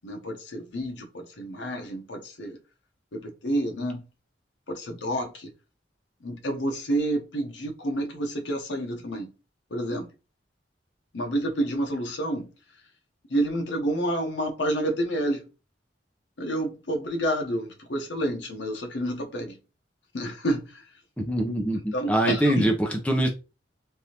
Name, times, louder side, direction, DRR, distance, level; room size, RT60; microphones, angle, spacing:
voice 1, 0.0-2.6 3.1-4.0 4.7-5.5 6.2-9.3 9.7-10.1 11.1-12.5 13.3-15.4 16.4-19.6 20.1-20.8 21.7-22.7, right 1 dB, 85° left, 0.8 m, -29 dB
voice 2, 21.2-23.3, right 1 dB, 5° left, 0.6 m, -24 dB
3.4 x 2.6 x 2.9 m
head